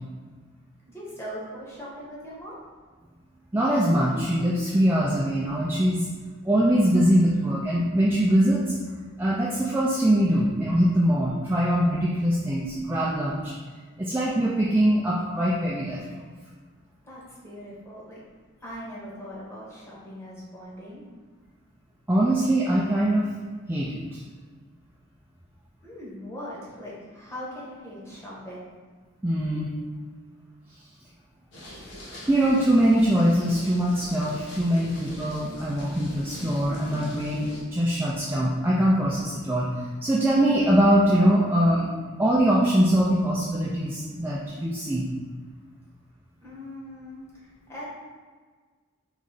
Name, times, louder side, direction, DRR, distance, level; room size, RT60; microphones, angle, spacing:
voice 1, 0.9-2.5 17.0-18.2 18.6-21.0 25.8-28.6 46.4-47.9, equal, 10° left, -7 dB, 1.1 m, -40 dB
voice 2, 3.5-8.7 9.2-13.5 14.0-16.2 22.1-23.3 23.7-24.2 29.2-29.7 32.3-39.7 40.0-41.9 42.2-45.1, right 1 dB, 10° right, -6 dB, 0.3 m, -22 dB
sound 1, 31.5-37.6, left 1 dB, 60° left, 0.9 m, -42 dB
3.8 x 3.1 x 3.8 m, 1.5 s
head